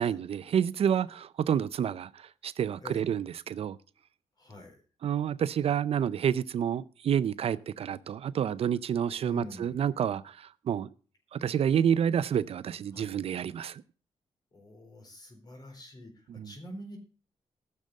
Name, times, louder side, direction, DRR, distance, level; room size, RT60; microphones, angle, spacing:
voice 1, 0.0-3.8 5.0-10.9 11.3-13.8 16.3-16.5, right 8 dB, 60° right, 0.5 m, -29 dB
voice 2, 2.8-3.2 4.4-4.8 9.2-9.9 12.9-13.1 14.5-17.0, left 1 dB, 35° left, 3.9 m, -46 dB
14.0 x 6.7 x 6.3 m
wide cardioid pair, 140°, 11 cm